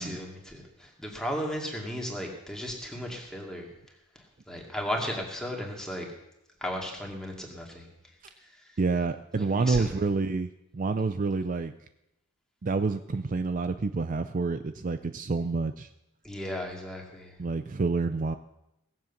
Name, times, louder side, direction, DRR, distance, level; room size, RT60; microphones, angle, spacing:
voice 1, 0.0-3.7 4.2-6.1 6.6-7.9 8.4-8.8 9.4-10.0 16.2-17.4, equal, 5° left, 0 dB, 2.3 m, -35 dB
voice 2, 8.8-11.7 12.6-15.9 17.4-18.4, right 4 dB, 40° right, 10 dB, 0.4 m, -28 dB
17.5 x 7.7 x 7.2 m, 0.88 s
head